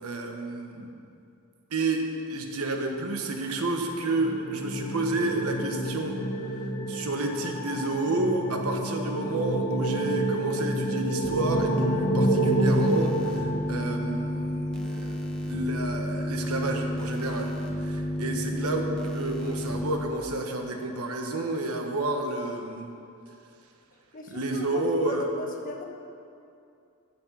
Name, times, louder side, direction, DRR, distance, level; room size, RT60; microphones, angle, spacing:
voice 1, 0.0-0.9 1.7-2.0 2.3-6.2 6.9-17.5 17.8-22.9 24.3-25.3, right 2 dB, 75° right, 3 dB, 1.3 m, -30 dB
sound 1, 3.6-14.3, right 1 dB, 70° left, 1.5 m, -29 dB
sound 2, 11.2-20.0, equal, 5° left, 1.0 m, -31 dB
voice 2, 24.1-25.8, left 2 dB, 40° left, 2 dB, 1.2 m, -38 dB
13.5 x 7.3 x 5.6 m, 2.6 s
head